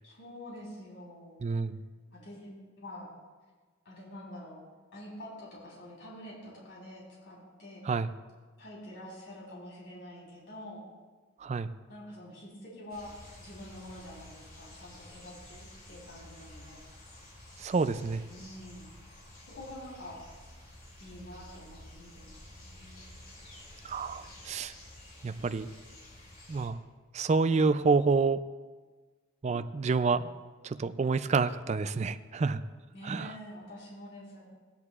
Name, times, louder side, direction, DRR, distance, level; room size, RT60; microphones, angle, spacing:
voice 1, 0.0-1.5 2.1-2.5 2.8-3.1 3.9-4.6 4.9-7.8 8.6-10.8 11.9-16.8 18.3-18.9 19.5-20.2 21.0-23.2 32.9-34.4, left 1 dB, 65° left, -5 dB, 3.6 m, -47 dB
voice 2, 1.4-1.8 7.9-8.1 11.4-11.7 17.6-18.3 23.8-24.7 25.2-25.7 26.5-26.8 27.1-28.4 29.4-30.3 30.6-32.6 33.0-33.3, right 4 dB, 35° right, 12 dB, 0.3 m, -28 dB
sound 1, 12.9-26.7, left 1 dB, 45° left, 2.7 m, -51 dB
16.5 x 10.0 x 2.4 m, 1.4 s
head